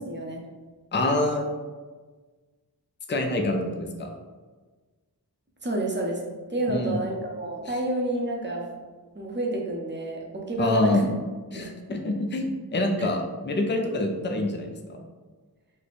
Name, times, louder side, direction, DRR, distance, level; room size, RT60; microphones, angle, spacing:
voice 1, 0.1-0.4 5.6-6.2 6.5-8.7 9.1-11.1 11.5-11.7 13.0-13.1, right 1 dB, 30° right, -1 dB, 0.7 m, -29 dB
voice 2, 0.9-1.5 3.1-4.1 6.7-7.1 10.6-11.0 11.5-15.0, left 2 dB, 30° left, 3 dB, 0.5 m, -26 dB
3.2 x 2.2 x 4.1 m, 1.4 s
wide cardioid pair, 45°, 38 cm